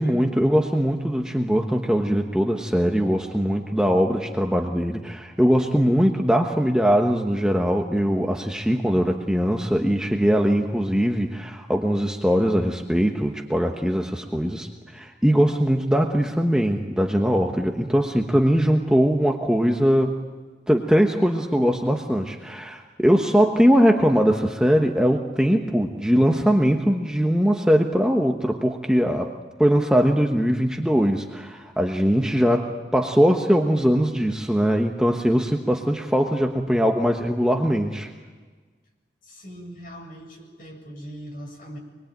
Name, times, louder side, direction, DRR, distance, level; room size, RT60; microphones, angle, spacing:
voice 1, 0.0-20.3 20.7-29.3 29.6-38.1, equal, 5° right, 1 dB, 1.2 m, -21 dB
voice 2, 39.2-41.8, equal, 50° left, 0 dB, 7.7 m, -40 dB
25.5 x 22.0 x 9.0 m, 1.4 s
head